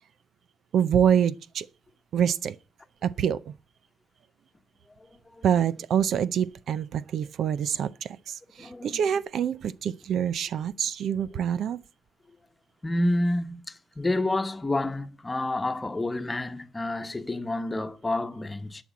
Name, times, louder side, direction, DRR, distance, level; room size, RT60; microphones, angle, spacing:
voice 1, 0.7-1.7 2.1-2.6 3.0-3.5 5.4-11.8, right 8 dB, 65° right, 0.6 m, -26 dB
voice 2, 5.0-5.5 8.6-9.0 11.3-11.4 12.8-18.8, left 1 dB, 20° left, 1.1 m, -29 dB
11.5 x 6.1 x 8.2 m
cardioid pair, 90°, 0 cm